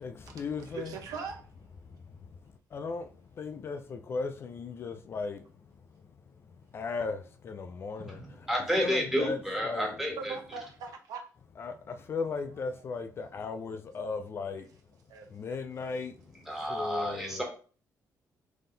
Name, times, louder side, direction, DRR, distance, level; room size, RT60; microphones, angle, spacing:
voice 1, 0.0-0.9 1.8-2.3 2.7-3.1 3.4-5.4 6.7-8.5 8.8-10.0 11.6-14.7 15.3-16.2 16.7-17.4, left 4 dB, 40° left, 0.4 m, -36 dB
voice 2, 0.6-1.4 10.2-11.2 12.8-12.9 13.2-13.3 15.1-15.3 16.5-16.6, right 5 dB, 85° right, 0.9 m, -40 dB
voice 3, 8.0-10.3 16.5-17.4, equal, 5° right, 1.2 m, -31 dB
3.8 x 2.8 x 3.8 m
cardioid pair, 140°, 6 cm